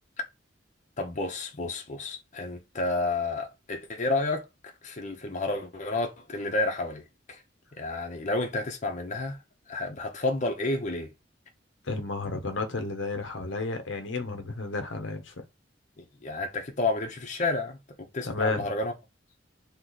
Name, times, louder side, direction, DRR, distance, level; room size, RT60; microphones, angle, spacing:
voice 1, 1.0-4.5 4.8-7.0 7.3-7.4 7.8-9.4 9.7-11.1 16.0-18.9, left 2 dB, 40° left, 0.9 m, -30 dB
voice 2, 11.8-15.4 18.2-18.6, left 3 dB, 85° left, 0.9 m, -32 dB
3.1 x 3.1 x 3.9 m
head